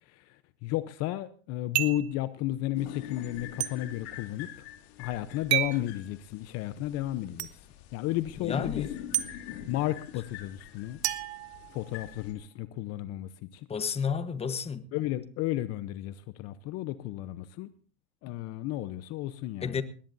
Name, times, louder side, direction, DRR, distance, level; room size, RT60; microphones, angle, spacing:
voice 1, 0.1-4.5 5.0-7.6 7.9-8.9 9.7-11.0 11.7-13.7 14.9-17.7 18.2-19.8, left 15 dB, 50° left, 0.8 m, -33 dB
sound 1, 1.7-2.1 3.6-3.7 5.5-5.8 7.4-7.5 9.1-9.3 11.0-12.1, right 15 dB, 80° right, 1.2 m, -30 dB
sound 2, 2.7-12.3, left 11 dB, 70° left, 3.2 m, -45 dB
voice 2, 8.4-8.9 13.7-14.9 19.6-19.8, left 6 dB, 20° left, 1.2 m, -31 dB
20.5 x 17.5 x 2.7 m
supercardioid pair, 110°, 33 cm